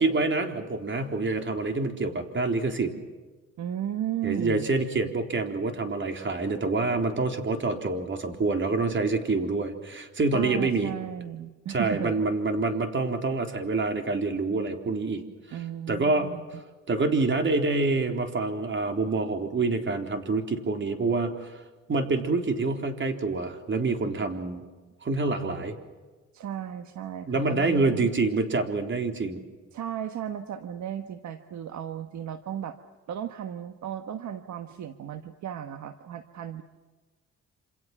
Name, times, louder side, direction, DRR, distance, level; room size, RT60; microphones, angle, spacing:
voice 1, 0.0-2.9 4.2-10.9 11.7-15.2 15.9-16.3 16.9-21.5 21.9-24.6 25.0-25.7 27.3-29.4, right 3 dB, 40° right, 5 dB, 4.0 m, -26 dB
voice 2, 3.6-4.7 10.3-12.1 15.5-16.6 26.3-28.1 29.7-32.8 33.1-36.6, right 10 dB, 70° right, 8 dB, 1.4 m, -35 dB
28.0 x 27.5 x 6.1 m, 1.3 s
cardioid pair, 90°, 30 cm